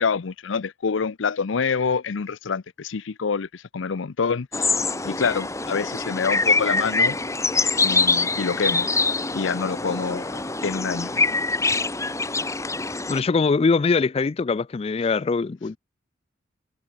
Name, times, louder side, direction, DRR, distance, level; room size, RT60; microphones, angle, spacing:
voice 1, 0.0-4.7 5.0-7.2 7.8-8.9 9.3-11.1, left 5 dB, 85° left, 0.6 m, -26 dB
sound 1, 4.5-13.2, left 3 dB, 15° left, 1.9 m, -24 dB
voice 2, 13.1-15.8, left 4 dB, 30° left, 0.4 m, -22 dB
head